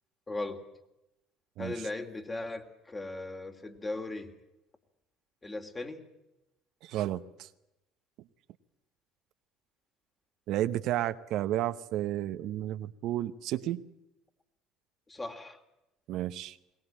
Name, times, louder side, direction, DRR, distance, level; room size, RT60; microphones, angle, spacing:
voice 1, 0.3-0.6 1.6-4.3 5.4-6.0 15.1-15.6, left 2 dB, 20° left, 5 dB, 2.9 m, -38 dB
voice 2, 6.8-7.5 10.5-13.8 16.1-16.6, right 13 dB, 65° right, 11 dB, 0.8 m, -32 dB
21.5 x 19.0 x 8.8 m, 0.90 s
hypercardioid pair, 75°, 0 cm